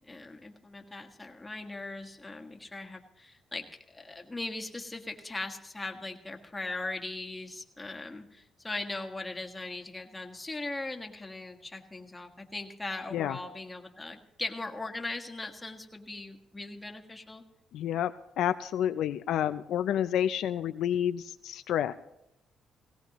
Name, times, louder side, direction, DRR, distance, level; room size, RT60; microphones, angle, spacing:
voice 1, 0.0-17.4, left 2 dB, 15° left, 3 dB, 1.6 m, -39 dB
voice 2, 17.7-18.1 18.4-21.9, left 10 dB, 80° left, 10 dB, 0.4 m, -29 dB
17.5 x 17.5 x 3.0 m, 0.82 s
cardioid pair, 90°, 0 cm